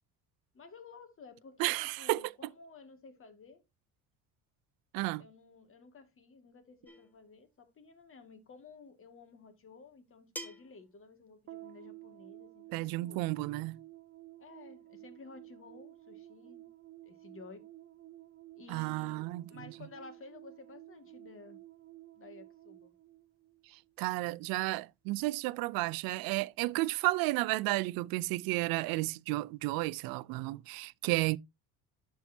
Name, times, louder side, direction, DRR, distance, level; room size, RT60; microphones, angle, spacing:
voice 1, 0.5-3.6 5.2-13.2 14.4-16.7 17.0-17.7 18.5-21.6 22.2-22.9, left 4 dB, 40° left, 2.2 m, -54 dB
voice 2, 1.6-2.3 4.9-5.2 12.7-13.8 18.7-19.4 23.7-31.4, right 20 dB, 85° right, 0.5 m, -32 dB
sound 1, 6.9-7.2 8.7-8.8 10.4-10.8, equal, 5° left, 1.8 m, -45 dB
sound 2, 11.5-24.0, right 16 dB, 40° right, 0.7 m, -53 dB
11.5 x 4.7 x 2.8 m
cardioid pair, 105°, 34 cm